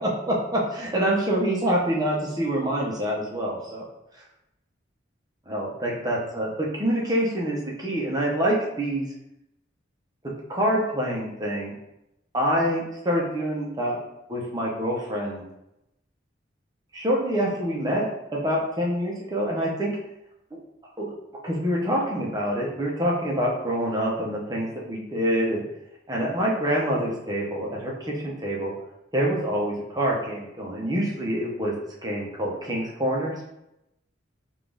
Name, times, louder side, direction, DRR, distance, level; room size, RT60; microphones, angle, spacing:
voice 1, 0.0-3.8 5.5-9.1 10.5-11.7 12.3-14.0 14.3-15.4 16.9-18.1 18.3-19.9 21.0-21.1 21.4-25.6 26.1-28.7 29.1-31.7 32.0-33.3, equal, 20° right, -3 dB, 0.8 m, -26 dB
4.0 x 2.5 x 3.5 m, 0.86 s
head